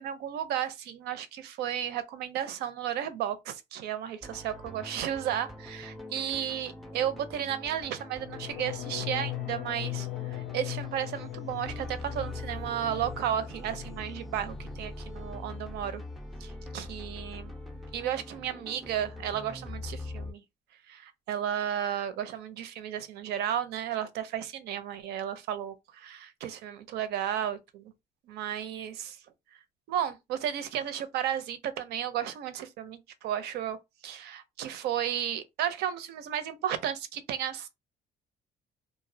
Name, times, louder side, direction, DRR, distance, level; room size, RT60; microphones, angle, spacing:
voice 1, 0.0-16.0 16.4-17.5 17.9-20.4 20.9-27.9 28.3-29.2 29.9-33.8 34.0-37.7, right 10 dB, 75° right, 0.5 m, -33 dB
sound 1, 4.2-20.3, left 1 dB, ahead, 0.4 m, -43 dB
sound 2, 8.2-14.1 14.4-14.9 15.2-15.6, left 19 dB, 75° left, 0.4 m, -39 dB
2.3 x 2.0 x 2.6 m
cardioid pair, 110°, 17 cm